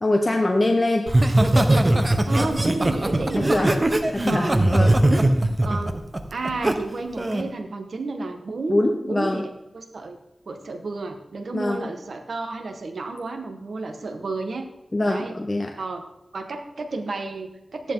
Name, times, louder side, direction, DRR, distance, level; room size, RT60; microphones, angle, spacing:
voice 1, 0.0-1.0 3.4-3.8 4.1-4.9 8.7-9.5 11.5-11.9 14.9-15.7, left 2 dB, 30° left, 2 dB, 1.3 m, -23 dB
Laughter, 1.1-6.7 7.2-7.5, right 1 dB, 30° right, 1.4 m, -20 dB
voice 2, 2.2-3.8 4.3-4.6 5.0-5.3 5.6-6.0 6.3-8.8 9.1-9.5 9.7-10.2 10.5-14.7 15.1-15.4 15.8-16.0 16.3-17.9, right 3 dB, 75° right, 5 dB, 1.8 m, -31 dB
14.5 x 11.0 x 4.0 m, 0.91 s
wide cardioid pair, 75°, 0 cm